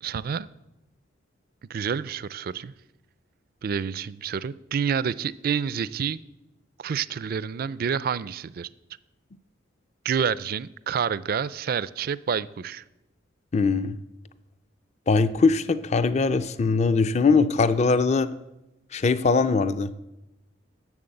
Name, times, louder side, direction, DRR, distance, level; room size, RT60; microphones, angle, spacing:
voice 1, 0.0-0.5 1.7-2.7 3.6-6.2 6.8-8.7 10.0-12.8, right 7 dB, 50° right, 18 dB, 0.4 m, -28 dB
voice 2, 13.5-14.0 15.1-18.3 18.9-20.0, left 4 dB, 35° left, 14 dB, 0.5 m, -21 dB
11.0 x 7.1 x 7.8 m, 0.95 s
head